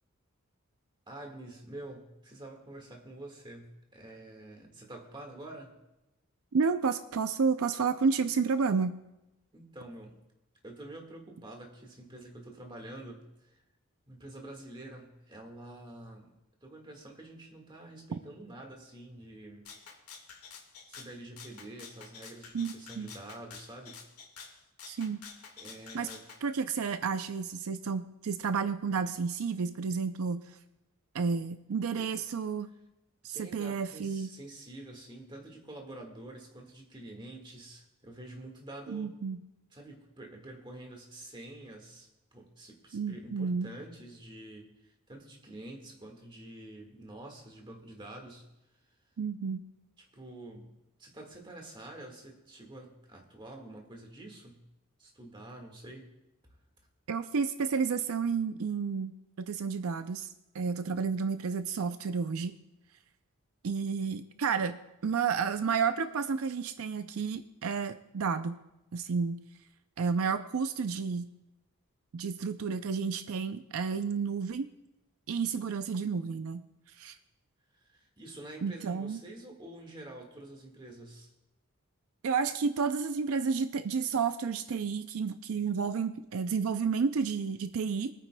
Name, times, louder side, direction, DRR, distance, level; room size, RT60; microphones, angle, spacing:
voice 1, 1.1-5.8 9.5-10.2 10.6-13.6 14.1-16.3 16.6-19.6 20.9-24.0 25.6-26.2 31.9-32.1 33.3-39.1 39.7-48.4 50.1-50.7 51.0-54.6 55.0-56.1 77.8-81.3, right 1 dB, 20° right, 1 dB, 1.6 m, -47 dB
voice 2, 6.5-9.0 22.5-23.1 24.9-25.2 25.9-26.1 26.4-30.5 31.1-32.7 33.2-34.3 38.9-39.4 42.9-43.7 49.2-49.6 57.1-62.6 63.6-68.6 68.9-69.4 70.0-71.3 72.1-74.7 75.3-76.7 77.0-77.2 78.6-79.2 82.2-88.1, right 5 dB, 75° right, 10 dB, 0.5 m, -31 dB
Rattle (instrument), 19.7-26.4, left 6 dB, 85° left, 1.8 m, -49 dB
24.0 x 9.2 x 2.2 m, 0.94 s
head